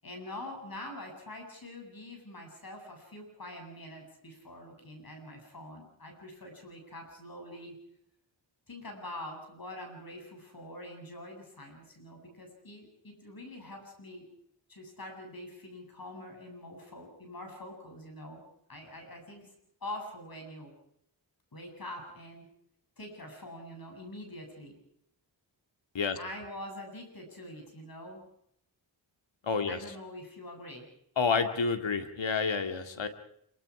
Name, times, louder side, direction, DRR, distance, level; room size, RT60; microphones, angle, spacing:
voice 1, 0.0-7.8 8.7-14.3 14.7-18.4 18.7-19.5 19.8-20.7 21.5-22.5 23.0-24.8 26.2-28.2 29.7-30.9, left 1 dB, 50° left, 2 dB, 8.0 m, -45 dB
voice 2, 29.4-29.8 31.2-33.1, left 5 dB, 75° left, 7 dB, 2.2 m, -29 dB
26.5 x 24.0 x 4.9 m, 0.72 s
wide cardioid pair, 90°, 46 cm